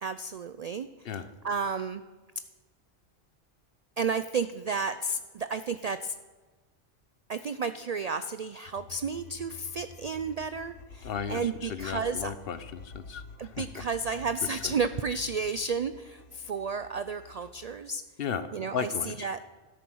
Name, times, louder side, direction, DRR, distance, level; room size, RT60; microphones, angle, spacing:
voice 1, 0.0-2.0 4.0-6.2 7.3-12.3 13.4-18.0 18.5-19.4, right 4 dB, 85° right, 12 dB, 0.3 m, -32 dB
sound 1, 8.7-17.7, left 3 dB, 80° left, 1.4 m, -49 dB
voice 2, 11.0-11.4 11.7-13.8 14.6-14.7 18.2-19.3, left 7 dB, 55° left, 13 dB, 0.9 m, -35 dB
13.0 x 10.0 x 6.2 m, 1.3 s
omnidirectional pair, 1.2 m